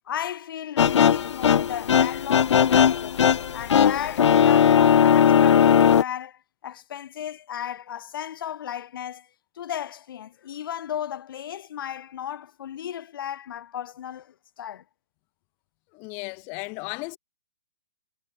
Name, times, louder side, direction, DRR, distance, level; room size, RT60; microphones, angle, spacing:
voice 1, 0.0-3.2 3.5-9.3 9.6-14.8 17.1-17.2, left 10 dB, 45° left, 3.7 m, -35 dB
sound 1, 0.8-6.0, left 8 dB, 75° left, 0.7 m, -18 dB
voice 2, 15.9-17.2, left 33 dB, 15° left, 0.4 m, -35 dB
hypercardioid pair, 170°, 15 cm